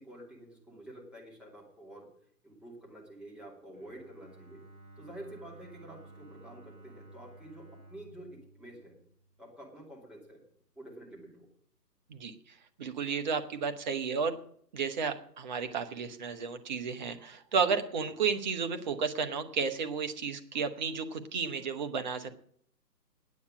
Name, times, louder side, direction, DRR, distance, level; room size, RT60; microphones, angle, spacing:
voice 1, 0.0-2.1 2.4-4.6 5.0-9.0 9.4-10.4 10.7-11.5, right 1 dB, ahead, -4 dB, 2.5 m, -49 dB
Bowed string instrument, 3.7-9.7, right 2 dB, 55° right, 3.3 m, -54 dB
voice 2, 12.8-14.3 14.7-22.3, right 5 dB, 25° right, 8 dB, 1.0 m, -32 dB
9.6 x 8.6 x 8.6 m, 0.62 s
figure-of-eight pair, 145°, 49 cm